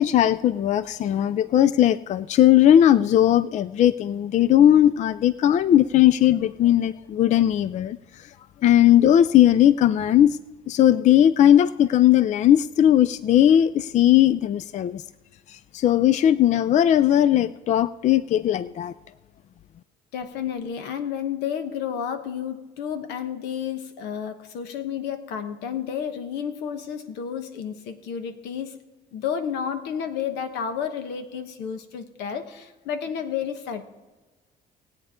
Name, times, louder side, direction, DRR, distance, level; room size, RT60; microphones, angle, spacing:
voice 1, 0.0-8.0 8.6-10.4 10.7-15.0 15.7-18.9, left 11 dB, 45° left, 16 dB, 0.4 m, -18 dB
voice 2, 20.1-28.8 29.1-33.8, left 8 dB, 85° left, 9 dB, 1.1 m, -31 dB
19.0 x 8.8 x 3.7 m, 1.2 s
cardioid pair, 110°, 17 cm